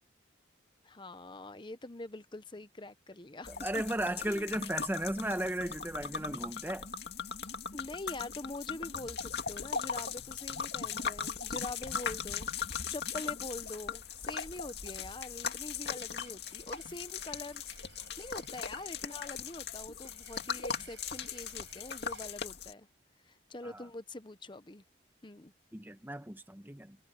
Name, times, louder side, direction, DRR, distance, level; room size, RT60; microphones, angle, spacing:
voice 1, 0.8-3.7 4.3-4.5 7.7-12.5 12.9-17.6 18.2-22.9 23.3-24.8 25.2-25.5, left 2 dB, 25° left, 0.9 m, -44 dB
sound 1, 3.4-22.7, left 6 dB, 55° left, 2.4 m, -39 dB
voice 2, 3.5-6.9 23.6-23.8 25.7-27.0, right 1 dB, 10° right, 1.2 m, -35 dB
sound 2, 15.7-22.3, right 8 dB, 70° right, 5.6 m, -59 dB
head